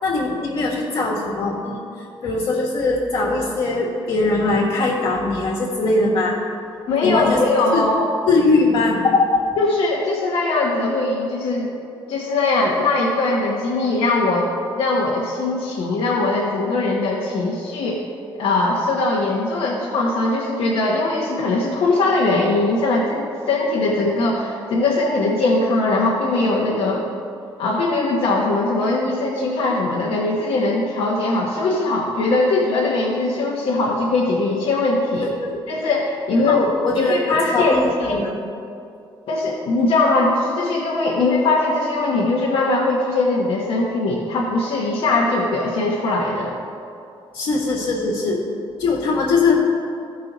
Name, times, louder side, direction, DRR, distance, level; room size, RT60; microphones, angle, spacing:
voice 1, 0.0-6.4 7.0-7.4 7.7-7.9 8.2-9.5 35.2-35.6 36.5-37.2 37.5-38.4 47.3-48.4 48.8-49.5, left 3 dB, 70° left, -5 dB, 1.6 m, -21 dB
voice 2, 6.9-8.1 9.6-11.7 12.1-14.5 14.8-18.0 18.4-27.0 27.6-35.3 35.7-36.7 36.9-38.2 39.3-46.6, left 2 dB, 90° left, -5 dB, 1.1 m, -20 dB
15.0 x 5.5 x 4.0 m, 2.6 s
cardioid pair, 150°, 9 cm